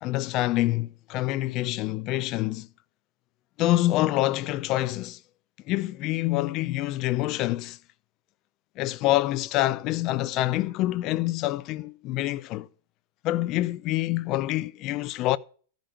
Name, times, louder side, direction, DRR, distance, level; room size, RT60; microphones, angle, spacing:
voice 1, 0.0-2.7 3.6-5.2 5.7-7.8 8.8-12.7 13.2-15.4, left 16 dB, 35° left, 0.5 m, -26 dB
14.5 x 5.2 x 5.7 m
supercardioid pair, 145°, 0 cm